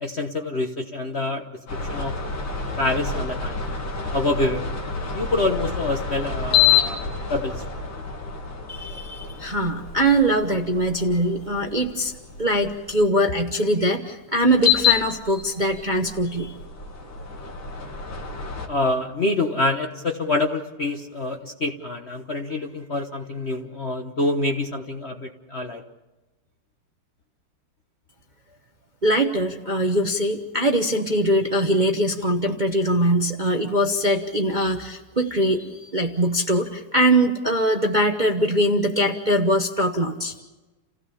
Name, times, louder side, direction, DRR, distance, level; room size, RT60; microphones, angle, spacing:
voice 1, 0.0-1.4 1.9-2.1 2.8-3.6 4.1-4.6 5.1-7.0 7.3-7.5 18.7-25.8, left 2 dB, 40° left, 4 dB, 1.1 m, -26 dB
sound 1, 1.7-13.0 14.5-18.7, left 8 dB, 60° left, 3.0 m, -27 dB
voice 2, 8.7-12.1 12.4-16.5 29.0-40.3, right 1 dB, 30° right, 3 dB, 0.9 m, -22 dB
30.0 x 16.0 x 7.0 m, 1.1 s
omnidirectional pair, 2.4 m